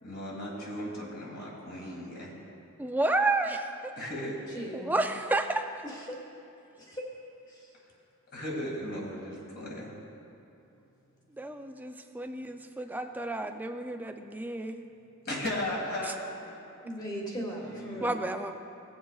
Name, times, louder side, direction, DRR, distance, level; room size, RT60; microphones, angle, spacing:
voice 1, 0.0-2.3 4.0-4.3 8.3-10.0 15.2-16.6 17.6-18.1, left 1 dB, 45° left, -3 dB, 2.1 m, -36 dB
voice 2, 2.8-3.9 4.7-5.8 11.4-14.8 16.0-16.2 18.0-18.5, right 2 dB, 10° right, 6 dB, 0.4 m, -31 dB
voice 3, 4.5-5.0 5.8-6.2 6.8-7.0 7.5-7.7 16.8-18.2, equal, 20° left, -2 dB, 1.5 m, -38 dB
17.0 x 7.7 x 2.4 m, 2.7 s
head